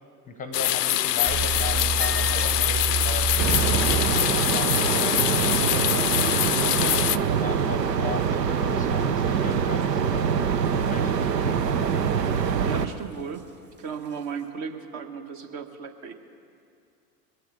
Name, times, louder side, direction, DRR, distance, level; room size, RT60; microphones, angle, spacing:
voice 1, 0.3-3.8 4.5-10.3 10.8-11.6, left 4 dB, 15° left, 8 dB, 0.7 m, -37 dB
sound 1, 0.5-7.2, left 13 dB, 75° left, 0.6 m, -24 dB
sound 2, 1.2-7.8 8.2-8.3 8.8-9.0 9.5-9.9 10.2-10.3 10.9-11.0 13.3-13.4 14.0-14.1, right 5 dB, 20° right, 1.6 m, -31 dB
sound 3, 3.4-12.9, right 7 dB, 80° right, 0.8 m, -24 dB
voice 2, 12.6-13.4 13.8-16.1, right 6 dB, 40° right, 6 dB, 1.3 m, -35 dB
21.0 x 7.4 x 6.5 m, 2.4 s
figure-of-eight pair, 90°, 48 cm